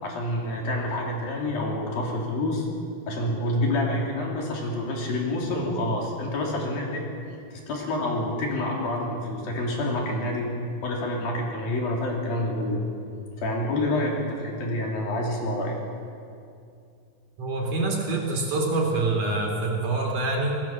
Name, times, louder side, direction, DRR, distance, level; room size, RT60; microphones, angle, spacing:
voice 1, 0.0-2.7 3.1-7.1 7.5-10.5 10.8-12.8 13.4-15.8, left 1 dB, 65° left, -1 dB, 5.3 m, -28 dB
voice 2, 17.4-20.6, right 2 dB, 55° right, 0 dB, 4.8 m, -26 dB
27.5 x 19.0 x 7.5 m, 2.4 s
omnidirectional pair, 4.5 m